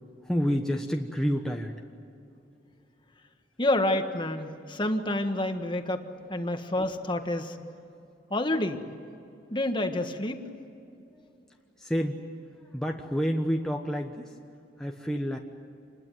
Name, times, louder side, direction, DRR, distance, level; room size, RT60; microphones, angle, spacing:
voice 1, 0.2-1.8 10.9-11.3 11.8-14.4 14.8-15.4, equal, 5° left, 1 dB, 1.2 m, -29 dB
voice 2, 3.6-6.0 6.3-7.6 8.3-8.8 9.5-10.4, left 1 dB, 25° left, 6 dB, 1.6 m, -28 dB
27.5 x 21.0 x 9.2 m, 2.6 s
head